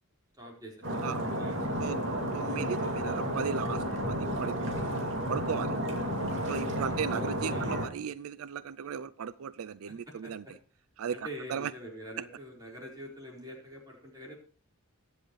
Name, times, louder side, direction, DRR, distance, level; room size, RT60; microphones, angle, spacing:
voice 1, 0.4-1.0 1.4-1.6 1.9-2.0 6.6-7.8 10.2-10.3 11.1-14.3, equal, 20° right, -2 dB, 4.5 m, -45 dB
Stream, 0.8-7.9, equal, 60° right, 2.6 m, -32 dB
voice 2, 2.3-5.8 6.5-10.4 11.0-11.7, right 7 dB, 85° right, 17 dB, 0.4 m, -36 dB
21.0 x 7.7 x 3.2 m, 0.40 s
head